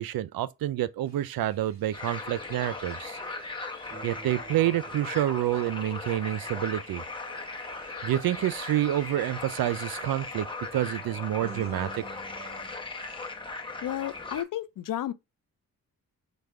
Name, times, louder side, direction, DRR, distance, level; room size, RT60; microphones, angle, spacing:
voice 1, 0.0-3.2 4.0-7.0 8.0-10.5 10.7-12.0, right 13 dB, 75° right, 0.5 m, -28 dB
sound 1, 1.1-12.7, right 4 dB, 40° right, 1.9 m, -50 dB
sound 2, 1.9-14.4, left 3 dB, 15° left, 0.9 m, -38 dB
voice 2, 13.8-15.1, left 12 dB, 65° left, 0.5 m, -32 dB
5.0 x 2.2 x 4.4 m
cardioid pair, 70°, 36 cm